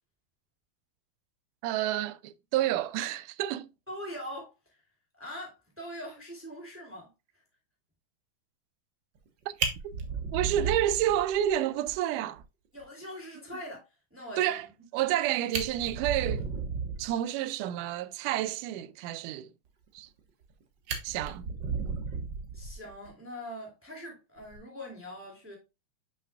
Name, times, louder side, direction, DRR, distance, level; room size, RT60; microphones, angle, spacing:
voice 1, 1.6-3.7 9.8-9.9 10.3-12.4 14.4-14.7 14.9-16.5 17.0-19.5 20.0-20.1 21.0-21.5, right 12 dB, 90° right, 2.1 m, -29 dB
voice 2, 3.9-4.5 5.2-7.1 12.7-13.8 14.1-14.7 15.1-15.2 22.5-25.6, equal, 5° right, 2.5 m, -42 dB
Fire, 9.1-9.3 9.6-11.5 11.9-12.0 12.3-12.4 12.8-12.9 15.0-15.1 15.4-17.2 20.0-20.5 20.9-23.1 24.4-24.6, right 5 dB, 55° right, 1.3 m, -34 dB
7.9 x 5.6 x 2.3 m
omnidirectional pair, 3.6 m